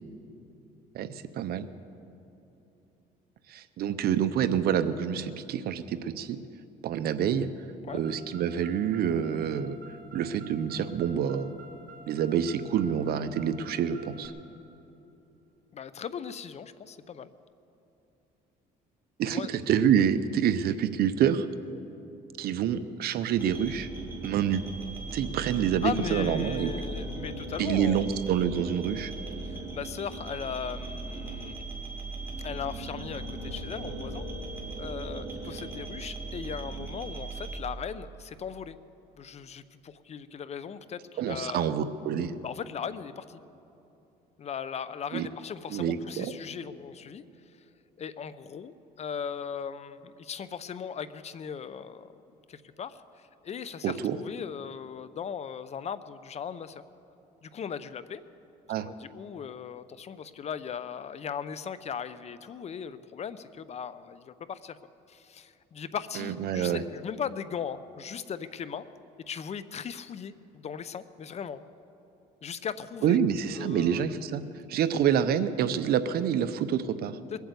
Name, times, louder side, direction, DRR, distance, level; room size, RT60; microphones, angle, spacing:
voice 1, 0.9-1.7 3.5-6.4 6.8-7.5 7.9-9.8 10.1-11.5 12.1-14.3 19.2-21.5 22.4-23.9 24.2-24.6 25.1-26.7 27.6-29.1 41.2-42.4 45.1-45.3 45.7-46.3 53.8-54.2 58.7-58.9 66.2-66.8 73.0-74.4 74.7-77.2, right 9 dB, 65° right, 12 dB, 0.8 m, -27 dB
Car, 7.9-14.3, right 3 dB, 50° right, 2.6 m, -50 dB
voice 2, 15.7-17.3 19.3-19.5 25.8-28.1 29.4-31.5 32.4-34.2 34.8-38.8 39.2-41.7 42.4-43.4 44.4-47.2 48.0-48.7 49.0-52.1 52.5-56.8 57.4-58.2 58.8-64.8 65.1-68.8 69.3-71.6 72.4-73.2 73.6-74.0 77.3-77.4, left 7 dB, 40° left, 14 dB, 0.6 m, -38 dB
sound 1, 23.4-37.5, right 3 dB, 15° right, 3.5 m, -38 dB
21.5 x 8.2 x 8.1 m, 2.9 s
cardioid pair, 110°, 17 cm